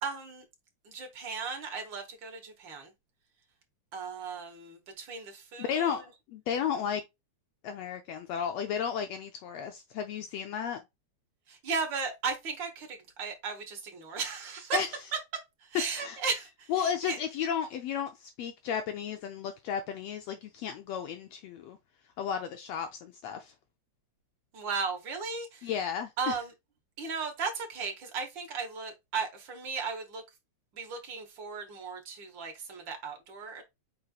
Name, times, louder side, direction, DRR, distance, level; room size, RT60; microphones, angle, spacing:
voice 1, 0.0-0.4 0.8-2.9 3.9-6.0 11.5-14.8 15.7-17.2 24.5-25.7 26.2-26.5 27.0-30.2 30.7-33.6, right 5 dB, 50° right, 1.5 m, -36 dB
voice 2, 5.6-7.0 7.6-10.8 14.7-14.9 16.0-16.2 16.7-21.8 22.2-23.5 25.6-26.4, left 8 dB, 75° left, 1.6 m, -33 dB
5.2 x 4.3 x 2.3 m
omnidirectional pair, 3.3 m